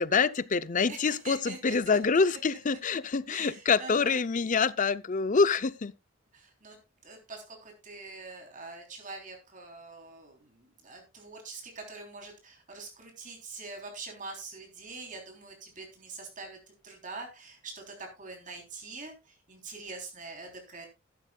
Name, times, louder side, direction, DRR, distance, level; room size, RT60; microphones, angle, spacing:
voice 1, 0.0-5.9, left 5 dB, 40° left, 0.5 m, -26 dB
voice 2, 0.9-2.0 3.3-4.2 6.3-16.6 16.8-20.9, right 3 dB, 40° right, 3.5 m, -44 dB
13.5 x 12.0 x 2.3 m
head